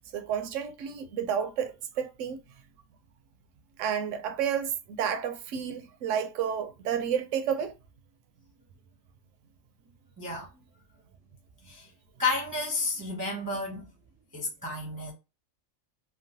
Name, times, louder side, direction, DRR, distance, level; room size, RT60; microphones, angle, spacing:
voice 1, 0.1-2.4 3.8-7.7, right 8 dB, 70° right, 0.8 m, -31 dB
voice 2, 10.2-10.5 11.7-11.9 12.2-13.9 14.3-15.1, left 3 dB, 20° right, 0.6 m, -31 dB
3.0 x 2.2 x 2.6 m
omnidirectional pair, 1.6 m